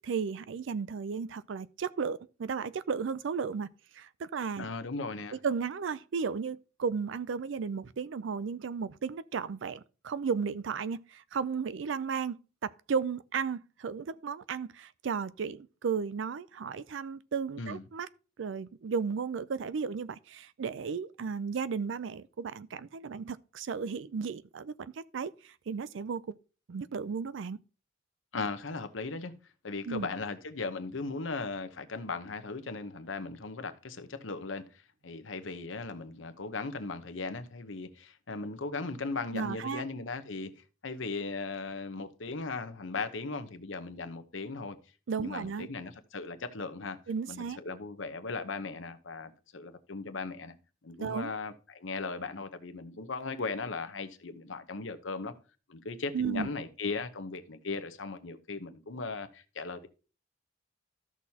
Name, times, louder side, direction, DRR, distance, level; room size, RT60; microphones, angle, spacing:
voice 1, 0.0-3.7 3.9-4.7 5.4-12.4 12.6-18.1 18.4-26.2 26.7-27.6 29.9-30.1 39.3-39.8 45.1-45.7 47.1-47.6 51.0-51.3 56.1-56.5, right 6 dB, 70° right, 0.4 m, -34 dB
voice 2, 4.6-5.4 17.6-17.8 28.3-29.3 29.6-44.8 45.2-47.0 47.3-50.5 50.8-55.3 55.7-59.9, left 3 dB, 75° left, 0.9 m, -38 dB
13.5 x 6.1 x 2.8 m
head